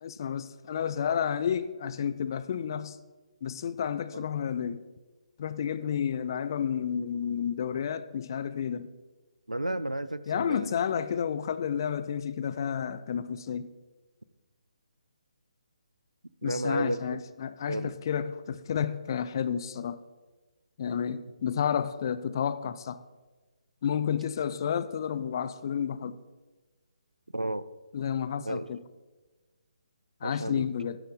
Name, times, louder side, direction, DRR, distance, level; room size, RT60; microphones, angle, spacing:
voice 1, 0.0-3.0 3.4-4.8 5.4-8.9 10.3-13.7 16.4-20.0 20.8-23.0 23.8-26.2 27.9-28.8 30.2-31.0, left 8 dB, 35° left, 0.4 m, -31 dB
voice 2, 9.5-10.7 16.4-17.0 17.7-17.9 27.3-27.6 28.5-28.7 30.2-30.7, right 1 dB, 85° right, 0.5 m, -32 dB
9.6 x 9.0 x 4.0 m
figure-of-eight pair, 140°, 4 cm